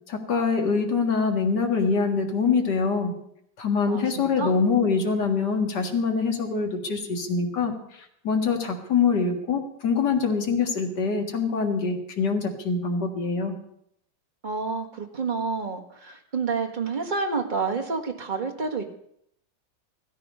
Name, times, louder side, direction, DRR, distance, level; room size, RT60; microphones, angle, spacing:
voice 1, 0.1-3.1 3.6-7.7 8.2-13.6, left 5 dB, 60° left, 3 dB, 2.5 m, -24 dB
voice 2, 3.9-4.5 14.4-18.8, right 4 dB, 25° right, 3 dB, 1.5 m, -29 dB
15.5 x 14.0 x 5.4 m, 0.72 s
omnidirectional pair, 2.0 m